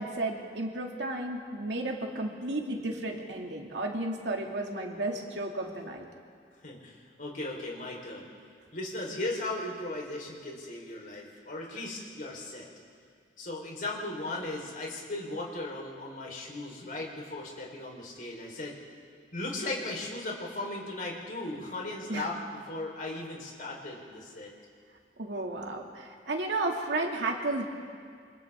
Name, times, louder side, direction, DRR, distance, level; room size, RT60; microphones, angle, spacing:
voice 1, 0.0-6.1 22.1-22.3 25.2-27.6, right 2 dB, 80° right, 1 dB, 2.5 m, -33 dB
voice 2, 6.6-8.3 8.7-12.7 13.4-18.8 19.3-24.5, left 2 dB, 50° left, -1 dB, 4.3 m, -37 dB
28.5 x 25.5 x 3.7 m, 2.2 s
head